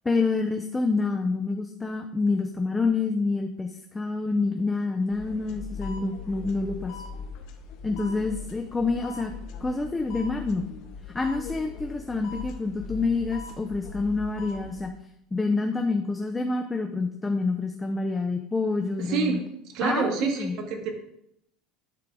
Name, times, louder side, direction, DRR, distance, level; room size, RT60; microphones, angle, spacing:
voice 1, 0.0-7.0 7.8-9.3 9.6-10.7 11.1-14.9 15.3-19.4 19.8-20.6, left 3 dB, 10° left, 4 dB, 0.6 m, -27 dB
sound 1, 5.1-14.9, left 5 dB, 60° left, 1.0 m, -40 dB
voice 2, 19.0-19.4 19.7-20.9, right 5 dB, 60° right, 2 dB, 1.9 m, -27 dB
10.5 x 3.8 x 4.8 m, 0.75 s
supercardioid pair, 130°, 0 cm